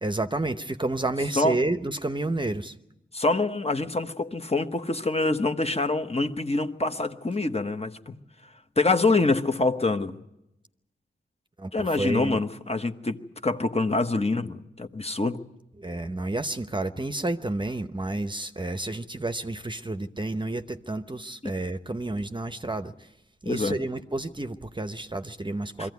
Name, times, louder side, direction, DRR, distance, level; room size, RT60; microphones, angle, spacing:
voice 1, 0.0-2.7 11.6-12.4 15.8-23.1 23.4-25.9, right 2 dB, 25° right, 9 dB, 0.8 m, -30 dB
voice 2, 3.1-8.1 8.8-10.2 11.7-15.4 23.4-23.8 25.8-25.9, left 3 dB, 30° left, 8 dB, 1.1 m, -25 dB
23.0 x 15.0 x 9.4 m, 0.89 s
wide cardioid pair, 70°, 20 cm